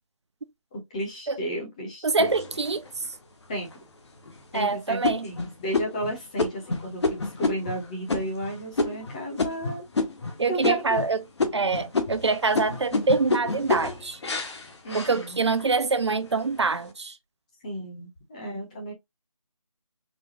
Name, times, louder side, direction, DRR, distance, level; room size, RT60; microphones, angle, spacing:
voice 1, 0.7-2.3 3.5-3.7 4.5-9.8 10.5-11.0 14.8-15.4 17.6-18.9, right 1 dB, 15° left, 0.7 m, -33 dB
voice 2, 2.0-2.8 4.5-5.3 10.4-11.2 11.5-14.2 14.9-17.2, right 4 dB, 55° right, 0.5 m, -25 dB
sound 1, 2.2-3.1 3.6-3.7 4.2-4.6 5.0-10.3 10.6-11.1 11.4-15.7 16.2-16.7, left 3 dB, 55° left, 0.8 m, -29 dB
4.0 x 2.2 x 2.9 m
figure-of-eight pair, 160°, 18 cm